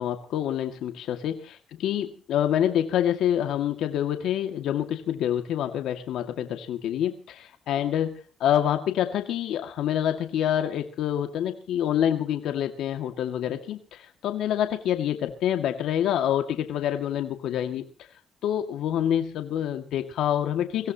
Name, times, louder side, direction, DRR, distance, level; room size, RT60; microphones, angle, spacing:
voice 1, 0.0-17.8 18.4-20.9, left 10 dB, 80° left, 6 dB, 2.1 m, -27 dB
23.5 x 17.0 x 3.0 m, 0.39 s
cardioid pair, 90°, 0 cm